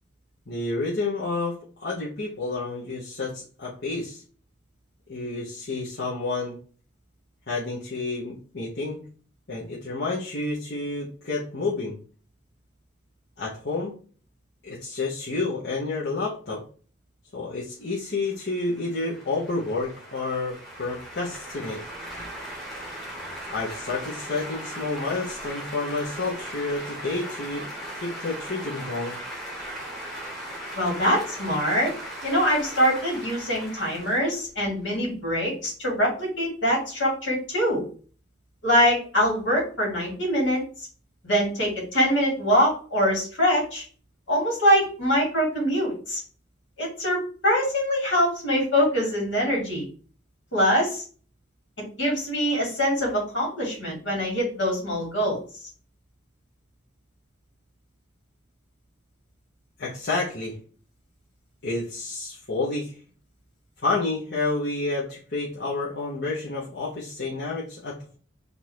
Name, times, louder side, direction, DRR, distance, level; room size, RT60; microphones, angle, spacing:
voice 1, 0.5-4.2 5.1-6.6 7.5-9.0 9.5-12.0 13.4-13.9 14.6-16.6 17.3-21.8 23.5-29.2 59.8-60.5 61.6-63.0 63.8-68.2, left 3 dB, 55° left, -7 dB, 1.1 m, -30 dB
sound 1, 18.3-35.0, right 1 dB, ahead, 1.0 m, -38 dB
voice 2, 30.7-31.9 32.2-37.8 38.6-40.6 41.2-43.8 44.3-46.2 46.8-49.9 50.5-51.0 52.0-55.4, equal, 70° left, -2 dB, 2.2 m, -23 dB
3.9 x 2.6 x 4.6 m, 0.41 s
head